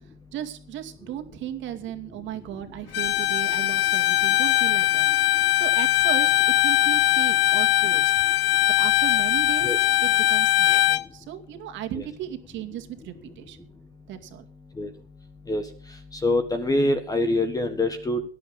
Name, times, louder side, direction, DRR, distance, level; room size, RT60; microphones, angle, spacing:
voice 1, 0.3-6.3 6.6-8.2 8.7-13.7 14.1-14.4, right 11 dB, 35° right, 6 dB, 2.4 m, -36 dB
Bowed string instrument, 2.9-11.0, left 15 dB, 70° left, 0.7 m, -21 dB
voice 2, 16.2-18.2, left 1 dB, 10° left, 9 dB, 1.5 m, -24 dB
18.5 x 11.0 x 3.9 m, 0.41 s
hypercardioid pair, 110°, 32 cm